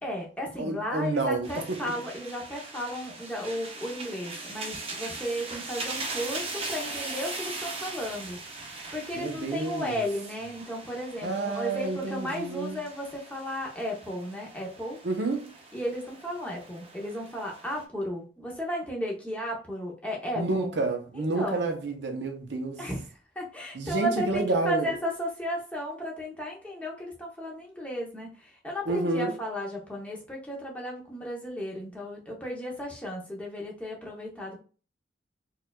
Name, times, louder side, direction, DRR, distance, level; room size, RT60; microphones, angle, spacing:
voice 1, 0.0-15.0 15.7-20.8 21.1-21.7 22.8-23.1 23.3-34.6, equal, 10° left, 0.8 m, -34 dB
voice 2, 0.6-1.9 9.1-10.0 11.2-12.8 15.0-15.5 20.4-22.8 23.7-24.9 28.9-29.3, right 3 dB, 70° right, 0.7 m, -29 dB
sound 1, 1.4-17.8, right 3 dB, 30° right, 0.6 m, -40 dB
4.3 x 2.4 x 2.3 m
head